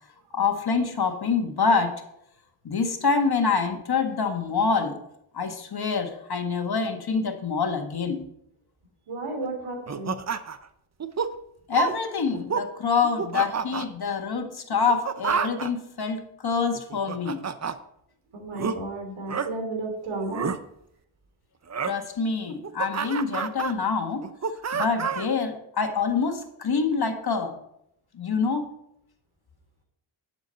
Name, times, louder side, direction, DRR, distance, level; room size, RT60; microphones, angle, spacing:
voice 1, 0.3-2.0 2.6-5.0 5.3-8.2 11.7-17.4 21.8-24.2 24.7-27.5 28.1-28.7, left 5 dB, 50° left, 6 dB, 1.6 m, -26 dB
voice 2, 9.1-10.1 18.3-20.5, right 2 dB, 80° right, 3 dB, 3.2 m, -33 dB
sound 1, 9.9-10.6 11.0-11.3 11.7-12.0 12.3-12.7 13.0-13.8 14.7-15.7 16.7-17.7 18.6-18.7 19.3-19.5 20.2-20.6 21.7-21.9 22.5-23.7 24.2-25.3, right 6 dB, 35° right, 0.8 m, -29 dB
11.0 x 7.1 x 4.4 m, 0.76 s
cardioid pair, 60°, 49 cm